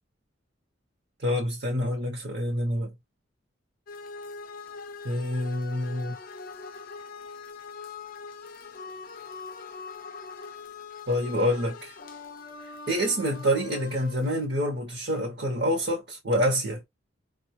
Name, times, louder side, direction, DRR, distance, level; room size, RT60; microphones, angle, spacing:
voice 1, 1.2-2.9 5.0-6.1 11.1-11.9 12.9-16.8, equal, 60° right, 0.8 m, -27 dB
sound 1, 3.9-14.4, left 5 dB, 45° left, 0.4 m, -42 dB
4.2 x 2.2 x 3.0 m
head